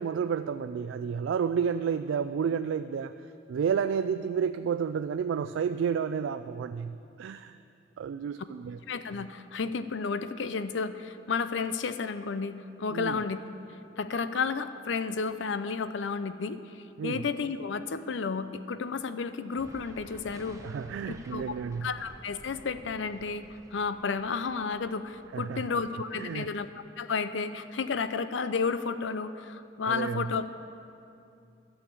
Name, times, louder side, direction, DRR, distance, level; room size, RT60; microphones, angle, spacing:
voice 1, 0.0-3.1 3.5-7.6 8.0-8.8 12.9-13.2 17.0-17.2 20.6-21.9 25.3-25.8 26.1-26.5 29.9-30.3, right 7 dB, 90° right, 10 dB, 0.3 m, -31 dB
voice 2, 8.9-13.4 14.0-20.6 21.1-21.4 21.8-23.4 23.7-26.7 27.0-30.4, left 5 dB, 80° left, 12 dB, 0.5 m, -32 dB
sound 1, 19.6-26.5, equal, 15° right, 0.8 m, -52 dB
13.0 x 6.4 x 8.7 m, 2.6 s
head